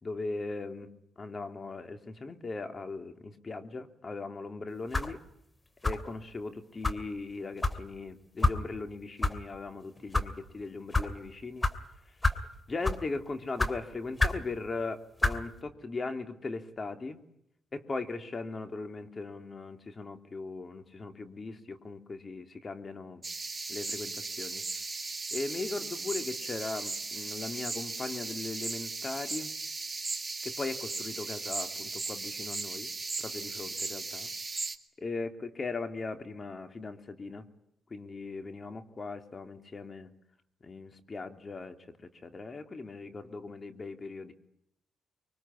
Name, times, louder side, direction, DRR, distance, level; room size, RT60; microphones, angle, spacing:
voice 1, 0.0-5.2 5.8-11.7 12.1-12.2 12.7-17.2 17.7-23.3 23.7-24.6 25.3-29.5 30.4-32.9 33.2-34.3 35.0-37.5 37.9-40.1 40.6-44.3, left 3 dB, 40° left, 7 dB, 3.2 m, -39 dB
sound 1, 4.9-5.2 5.8-6.1 6.8-7.0 7.6-7.8 8.4-8.6 9.2-9.3 10.0-10.3 10.9-11.1 11.6-11.8 12.2-12.5 12.8-13.1 13.6-13.7 14.2-14.4 15.2-15.4, left 2 dB, 25° left, 2.6 m, -27 dB
sound 2, 23.2-34.8, right 3 dB, 30° right, 2.2 m, -37 dB
25.0 x 23.5 x 10.0 m, 0.77 s
cardioid pair, 65°, 0 cm